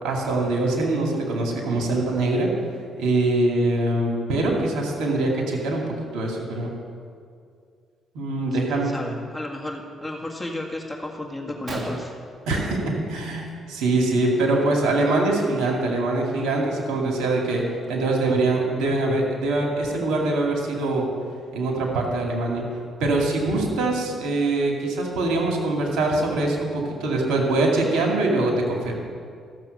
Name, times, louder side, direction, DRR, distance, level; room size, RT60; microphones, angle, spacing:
voice 1, 0.0-2.5 3.0-5.8 6.1-6.7 8.1-8.9 12.5-12.8 13.1-17.6 17.9-21.1 21.5-22.6 23.0-28.9, right 2 dB, 90° right, 0 dB, 2.4 m, -23 dB
voice 2, 8.4-12.1, left 1 dB, 5° left, -1 dB, 1.8 m, -33 dB
Gunshot gunfire, 11.4-11.5 11.7-13.3 13.6-14.0 14.2-14.4 15.2-15.4 16.0-16.1 16.5-18.1, right 2 dB, 40° right, 1.7 m, -39 dB
14.0 x 7.4 x 6.6 m, 2.2 s
cardioid pair, 90°, 0 cm